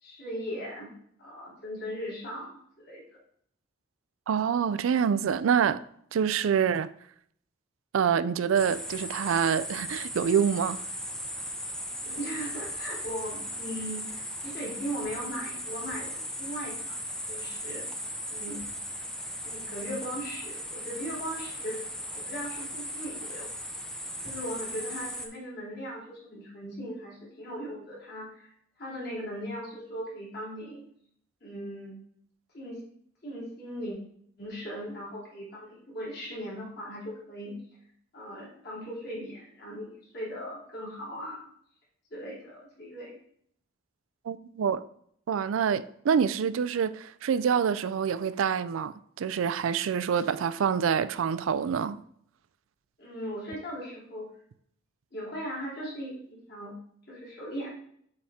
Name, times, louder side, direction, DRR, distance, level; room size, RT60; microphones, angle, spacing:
voice 1, 0.0-0.9 1.2-3.0 12.0-17.0 17.3-17.9 18.3-18.6 19.4-21.8 22.2-23.5 24.2-28.5 28.8-30.8 31.4-32.0 32.5-32.8 33.2-34.0 34.4-37.6 38.1-41.5 42.1-43.2 53.0-54.3 55.1-56.8 57.1-57.7, equal, 55° left, 3.0 m, -38 dB
voice 2, 4.3-5.8 6.1-6.9 7.9-10.8 44.3-44.8 45.3-52.0, right 7 dB, 85° right, 0.4 m, -26 dB
sound 1, 8.6-25.3, equal, 5° left, 0.5 m, -37 dB
7.7 x 3.6 x 4.1 m
head